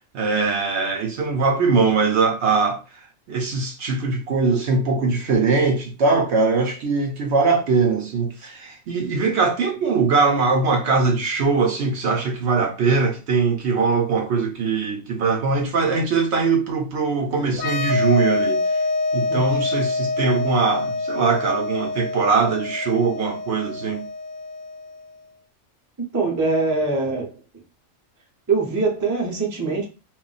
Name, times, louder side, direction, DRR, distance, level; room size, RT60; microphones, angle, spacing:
voice 1, 0.1-2.8 3.3-18.6 19.1-24.0, right 4 dB, 65° right, 0.8 m, -21 dB
sound 1, 17.5-25.0, left 3 dB, 60° left, 0.5 m, -26 dB
voice 2, 26.0-27.3 28.5-29.8, right 3 dB, 20° right, 0.5 m, -23 dB
2.3 x 2.1 x 3.8 m
omnidirectional pair, 1.4 m